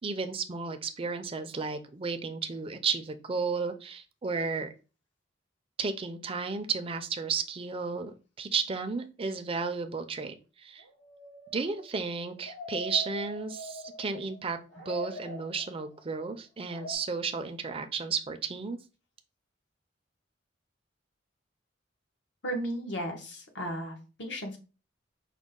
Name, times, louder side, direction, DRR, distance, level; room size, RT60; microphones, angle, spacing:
voice 1, 0.0-4.7 5.8-10.8 11.5-14.6 14.9-18.8, right 4 dB, 30° right, 8 dB, 0.4 m, -33 dB
sound 1, 10.8-14.4 14.7-16.0 16.7-16.9, equal, 85° left, 1.8 m, -43 dB
voice 2, 22.4-24.6, equal, 65° left, 3 dB, 1.0 m, -35 dB
5.1 x 2.2 x 3.7 m, 0.33 s
head